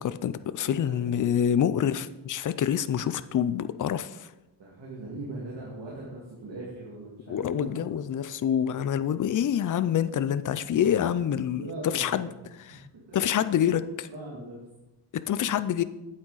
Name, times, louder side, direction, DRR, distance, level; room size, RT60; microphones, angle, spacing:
voice 1, 0.0-4.3 7.3-12.3 12.6-12.8 13.1-14.1 15.3-15.8, left 9 dB, 50° left, 13 dB, 0.5 m, -26 dB
voice 2, 0.6-0.9 4.6-7.9 11.6-12.2 12.7-12.8 13.1-13.7 14.1-14.6, right 2 dB, 90° right, -4 dB, 2.3 m, -40 dB
8.8 x 8.6 x 4.0 m, 1.0 s
wide cardioid pair, 125°, 42 cm